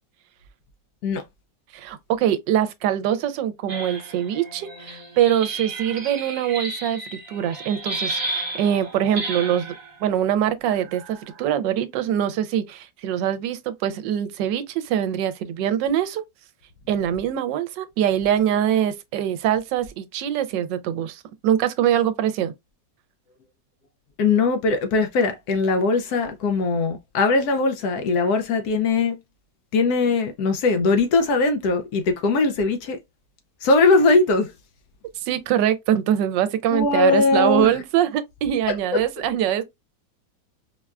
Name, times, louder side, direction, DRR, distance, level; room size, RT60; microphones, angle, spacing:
voice 1, 1.7-9.8 10.0-16.2 16.9-22.5 35.3-39.6, right 10 dB, 85° right, 1.2 m, -23 dB
sound 1, 3.7-9.9 10.8-11.4, right 2 dB, 55° right, 1.4 m, -33 dB
voice 2, 24.2-29.2 29.7-33.0 33.6-34.5 36.7-37.8 38.7-38.8, left 3 dB, 70° left, 1.0 m, -20 dB
4.5 x 2.2 x 2.3 m
omnidirectional pair, 1.9 m